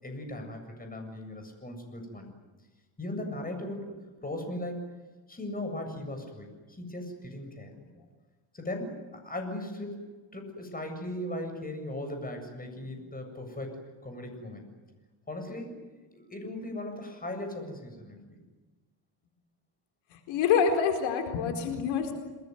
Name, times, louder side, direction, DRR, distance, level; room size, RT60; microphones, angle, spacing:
voice 1, 0.0-2.3 3.0-3.9 4.2-4.9 5.3-7.7 8.5-10.0 10.3-14.7 15.3-15.8 16.3-18.4, left 1 dB, 20° left, 5 dB, 7.7 m, -38 dB
voice 2, 20.1-22.1, left 6 dB, 80° left, 5 dB, 4.5 m, -26 dB
28.5 x 20.5 x 9.6 m, 1.2 s
cardioid pair, 105°, 46 cm